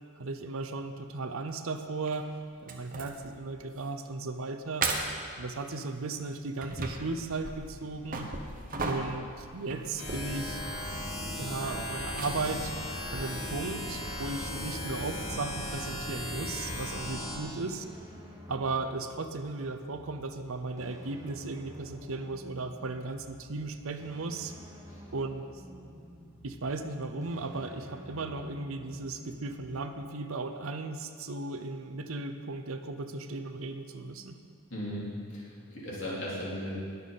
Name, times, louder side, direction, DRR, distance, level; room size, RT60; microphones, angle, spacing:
voice 1, 0.2-2.3 2.6-4.9 5.4-8.3 8.8-10.6 11.4-12.7 13.1-17.8 18.5-24.5 25.1-25.4 26.4-34.4, right 3 dB, 65° right, 8 dB, 0.7 m, -36 dB
sound 1, 2.1-2.2 2.7-3.3 3.7-3.9 4.3-4.4 4.8-5.3 6.1-14.2, right 3 dB, 40° right, 1.0 m, -38 dB
sound 2, 10.0-17.4, left 1 dB, 80° left, 3.2 m, -36 dB
sound 3, 13.3-29.7, equal, 15° right, 1.3 m, -50 dB
voice 2, 34.7-36.8, equal, 55° left, -6 dB, 3.6 m, -37 dB
20.5 x 6.9 x 4.2 m, 2.4 s
head